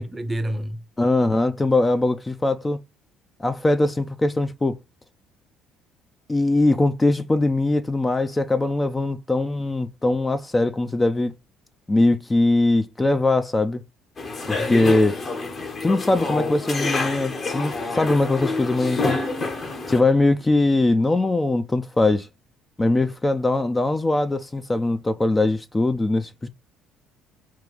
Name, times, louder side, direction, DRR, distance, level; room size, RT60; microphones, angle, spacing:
voice 1, 0.0-0.8 14.6-14.9, right 1 dB, 20° right, 0.7 m, -29 dB
voice 2, 1.0-2.8 3.4-4.8 6.3-11.3 11.9-13.8 14.5-15.1 15.8-19.2 19.9-22.3 22.8-26.5, left 2 dB, 20° left, 0.5 m, -21 dB
sound 1, 14.2-20.0, left 3 dB, 40° left, 1.2 m, -28 dB
4.6 x 2.5 x 3.8 m
hypercardioid pair, 60°, 0 cm